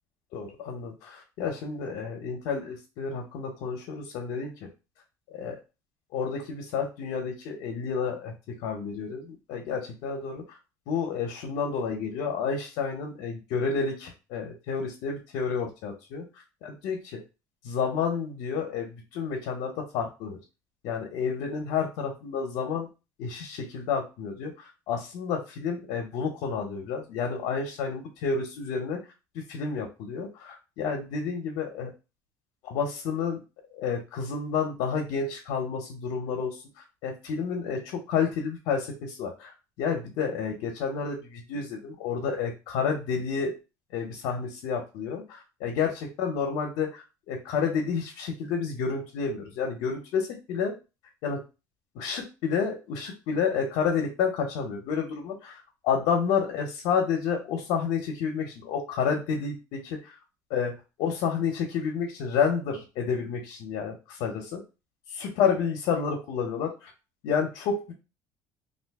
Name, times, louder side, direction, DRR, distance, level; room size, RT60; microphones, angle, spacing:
voice 1, 0.3-4.7 5.3-5.6 6.1-10.4 10.9-17.2 17.6-20.4 20.8-22.9 23.2-29.1 29.3-31.9 32.6-33.4 33.7-43.6 43.9-50.8 51.2-51.4 51.9-60.2 60.5-64.6 65.1-66.9 67.2-67.9, left 6 dB, 65° left, 2 dB, 0.7 m, -30 dB
2.6 x 2.5 x 3.5 m, 0.29 s
cardioid pair, 170°, 8 cm